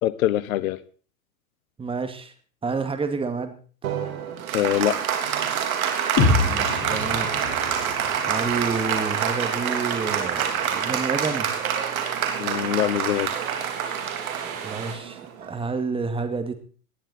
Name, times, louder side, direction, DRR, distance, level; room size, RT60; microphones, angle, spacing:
voice 1, 0.0-0.8 4.5-5.0 12.4-13.3, left 13 dB, 70° left, 17 dB, 1.1 m, -23 dB
voice 2, 1.8-2.3 2.6-3.6 6.4-7.3 8.3-11.5 14.4-16.6, right 4 dB, 10° right, 8 dB, 2.1 m, -29 dB
Applause, 3.8-15.7, right 8 dB, 75° right, 3.3 m, -27 dB
sound 1, 6.2-10.1, left 4 dB, 40° left, 4.9 m, -27 dB
sound 2, 8.3-14.9, right 7 dB, 45° right, 5.3 m, -40 dB
19.0 x 11.5 x 4.2 m, 0.40 s
hypercardioid pair, 115°, 43 cm